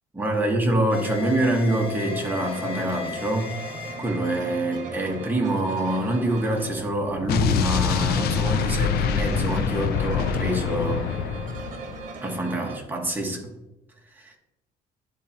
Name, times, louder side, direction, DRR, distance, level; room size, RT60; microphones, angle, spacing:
voice 1, 0.1-3.5 3.9-11.0 12.2-13.5 14.2-14.3, right 1 dB, 10° right, 0 dB, 1.5 m, -26 dB
sound 1, 0.9-6.2, left 8 dB, 30° left, 1.5 m, -37 dB
sound 2, 2.0-12.8, right 4 dB, 50° right, 1.2 m, -38 dB
Explosion, 7.3-12.1, left 7 dB, 65° left, 0.5 m, -25 dB
11.0 x 4.1 x 2.9 m, 0.98 s
cardioid pair, 110°, 17 cm